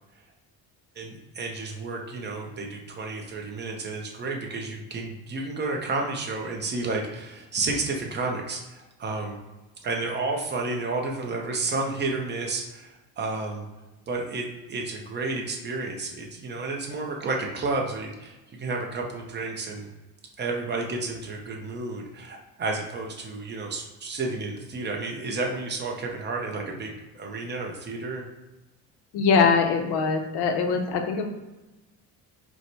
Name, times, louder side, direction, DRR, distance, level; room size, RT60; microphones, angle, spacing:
voice 1, 1.0-9.4 9.8-13.7 14.1-19.9 20.4-28.2, right 3 dB, 25° right, 1 dB, 0.6 m, -31 dB
voice 2, 29.1-31.3, left 5 dB, 80° left, 4 dB, 0.8 m, -22 dB
4.7 x 2.2 x 4.0 m, 1.0 s
cardioid pair, 160°, 38 cm